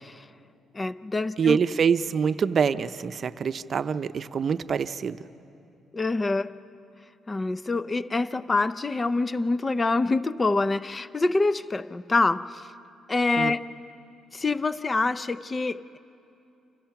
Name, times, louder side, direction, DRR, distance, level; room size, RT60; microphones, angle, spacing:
voice 1, 0.7-1.6 5.9-6.5 7.3-12.7 13.1-13.6 14.3-16.0, left 3 dB, 25° left, 0.6 m, -26 dB
voice 2, 1.4-5.2 13.4-13.5, right 6 dB, 50° right, 0.7 m, -25 dB
30.0 x 26.0 x 5.9 m
cardioid pair, 90°, 0 cm